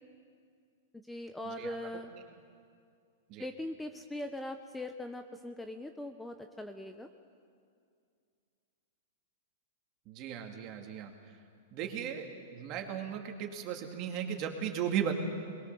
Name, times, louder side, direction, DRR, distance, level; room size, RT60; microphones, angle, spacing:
voice 1, 1.1-2.1 3.4-7.1, left 1 dB, 5° left, 7 dB, 0.8 m, -41 dB
voice 2, 10.1-11.1 11.7-12.3 12.5-15.1, right 9 dB, 40° right, 3 dB, 2.6 m, -36 dB
22.0 x 21.5 x 7.0 m, 2.3 s
hypercardioid pair, 135°, 0 cm